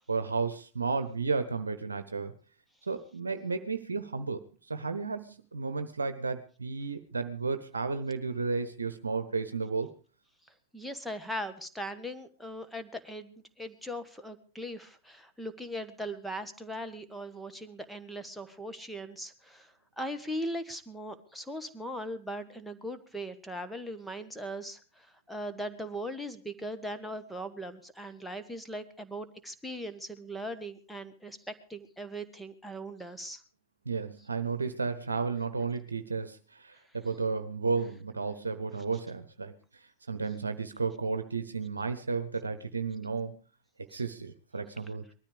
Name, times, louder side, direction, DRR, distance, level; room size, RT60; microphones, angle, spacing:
voice 1, 0.0-2.3 2.8-9.9 33.8-43.3 43.9-45.0, right 4 dB, 75° right, 10 dB, 1.0 m, -33 dB
voice 2, 10.7-33.4 43.9-44.0, equal, ahead, 8 dB, 1.6 m, -39 dB
20.0 x 13.5 x 5.1 m, 0.39 s
figure-of-eight pair, 90°, 0 cm